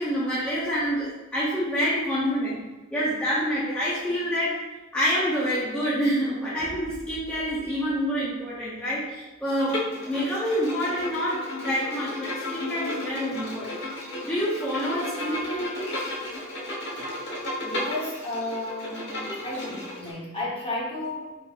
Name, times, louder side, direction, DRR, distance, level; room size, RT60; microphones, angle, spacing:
voice 1, 0.0-13.8 14.2-16.0, equal, 5° left, -9 dB, 0.7 m, -27 dB
Bowed string instrument, 9.6-20.1, left 1 dB, 55° left, 1.1 m, -34 dB
voice 2, 17.6-21.4, left 2 dB, 25° left, -5 dB, 1.2 m, -33 dB
5.0 x 3.4 x 2.5 m, 1.1 s
head